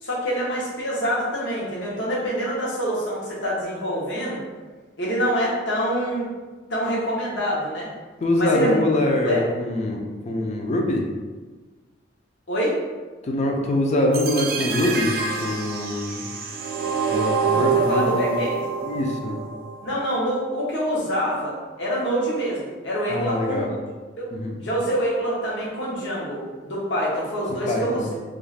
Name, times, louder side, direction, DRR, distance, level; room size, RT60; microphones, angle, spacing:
voice 1, 0.0-4.4 5.0-6.3 6.7-7.9 8.3-8.8 9.2-9.4 12.5-12.8 17.5-18.6 19.8-23.8 24.2-24.3 24.6-28.1, equal, 75° left, -5 dB, 0.8 m, -26 dB
voice 2, 8.2-11.1 13.3-16.2 17.1-18.4 18.8-19.4 23.1-23.7 24.3-24.6 27.7-28.1, left 1 dB, 35° left, 1 dB, 0.4 m, -24 dB
sound 1, 14.1-20.1, right 5 dB, 50° right, 0.3 m, -26 dB
2.3 x 2.3 x 3.2 m, 1.3 s
head